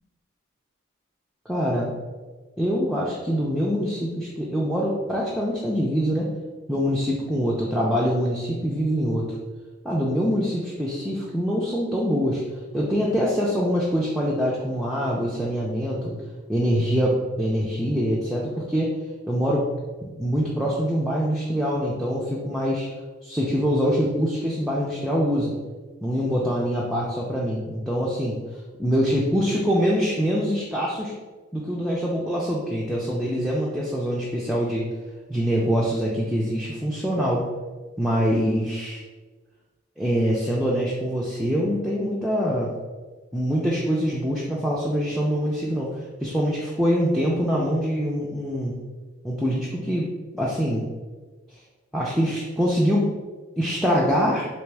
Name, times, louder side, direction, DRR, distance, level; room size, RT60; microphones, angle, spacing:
voice 1, 1.5-1.9 2.6-6.3 6.7-9.3 9.8-12.4 12.7-16.1 16.5-18.9 19.3-19.7 20.0-22.9 23.2-25.5 26.0-28.4 28.8-31.1 31.5-34.8 35.3-37.5 38.0-39.0 40.0-42.7 43.3-45.9 46.2-48.7 49.2-50.8 51.9-53.1 53.6-54.5, equal, ahead, -6 dB, 0.3 m, -24 dB
3.5 x 2.9 x 3.3 m, 1.3 s
head